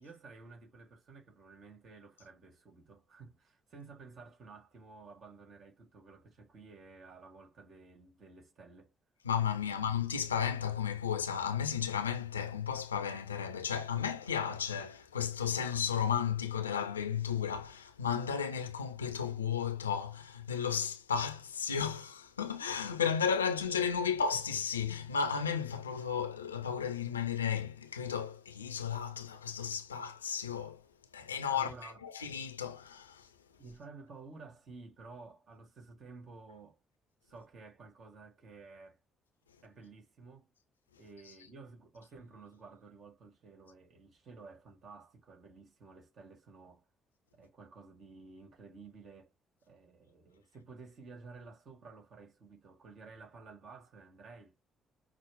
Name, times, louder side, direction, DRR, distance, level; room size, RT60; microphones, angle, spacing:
voice 1, 0.0-8.9 9.7-9.8 31.5-32.0 33.6-36.8 37.2-39.0 39.6-40.5 41.0-46.8 47.3-49.3 49.6-54.6, right 4 dB, 50° right, 1.9 m, -53 dB
voice 2, 9.2-30.8 31.1-33.3, left 7 dB, 80° left, 0.5 m, -34 dB
6.1 x 2.1 x 3.4 m
figure-of-eight pair, 45°, 0 cm